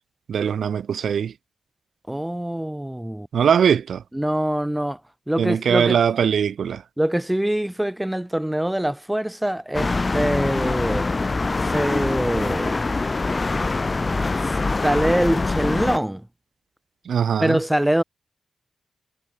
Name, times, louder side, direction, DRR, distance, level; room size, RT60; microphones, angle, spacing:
voice 1, 0.3-1.3 3.3-4.0 5.4-6.8 17.1-17.6, right 7 dB, 80° right, 3.5 m, -21 dB
voice 2, 2.1-3.3 4.1-5.0 5.3-6.0 7.0-11.1 11.6-12.9 14.4-16.3 17.4-18.0, right 1 dB, 5° right, 1.5 m, -24 dB
sound 1, 9.7-16.0, left 3 dB, 25° left, 1.7 m, -24 dB
wide cardioid pair, 155°, 0 cm